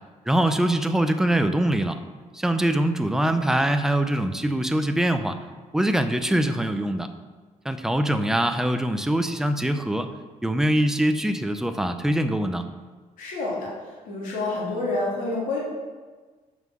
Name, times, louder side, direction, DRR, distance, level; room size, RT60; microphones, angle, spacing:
voice 1, 0.3-2.0 2.3-5.4 5.7-7.1 7.6-10.1 10.4-12.7, right 1 dB, 5° right, 8 dB, 0.5 m, -23 dB
voice 2, 13.2-15.6, left 2 dB, 90° left, -6 dB, 3.3 m, -28 dB
9.3 x 5.6 x 6.3 m, 1.4 s
cardioid pair, 170°, 14 cm